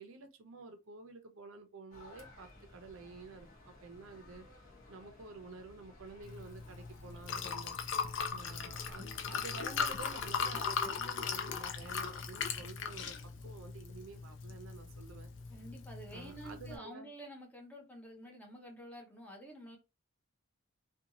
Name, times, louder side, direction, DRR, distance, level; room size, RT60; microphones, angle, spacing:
voice 1, 0.0-7.8 8.3-15.3 16.1-17.1, right 4 dB, 70° right, 0.5 m, -50 dB
sound 1, 1.9-10.4, left 1 dB, 40° left, 0.9 m, -57 dB
Liquid, 6.2-16.8, left 6 dB, 55° left, 0.4 m, -39 dB
voice 2, 15.5-19.8, right 1 dB, 5° left, 0.6 m, -50 dB
2.5 x 2.3 x 2.8 m
head